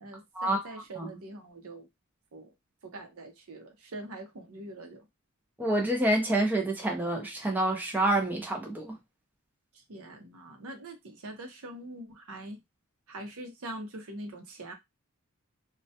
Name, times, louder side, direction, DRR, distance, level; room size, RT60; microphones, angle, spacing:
voice 1, 0.0-1.9 2.3-2.5 2.8-5.0 9.9-12.6 13.1-14.7, right 1 dB, 75° right, 0.7 m, -43 dB
voice 2, 5.6-9.0, right 1 dB, 10° right, 0.4 m, -27 dB
2.2 x 2.1 x 2.7 m
head